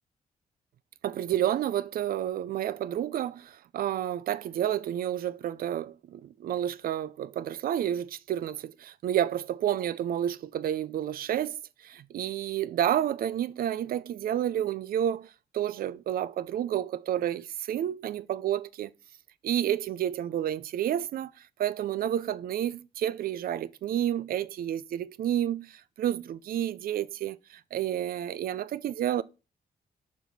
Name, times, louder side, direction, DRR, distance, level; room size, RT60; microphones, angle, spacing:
voice 1, 1.0-18.9 19.4-21.3 21.6-29.2, right 11 dB, 75° right, 0.4 m, -30 dB
6.7 x 4.4 x 4.1 m
wide cardioid pair, 130°, 15 cm